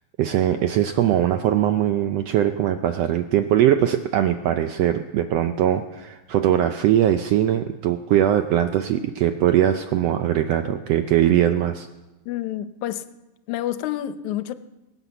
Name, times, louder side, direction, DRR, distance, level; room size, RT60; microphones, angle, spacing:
voice 1, 0.2-11.9, right 11 dB, 75° right, 8 dB, 1.5 m, -21 dB
voice 2, 12.3-13.1 13.5-14.5, left 12 dB, 80° left, 13 dB, 2.1 m, -28 dB
22.5 x 8.1 x 7.0 m, 1.0 s
omnidirectional pair, 3.5 m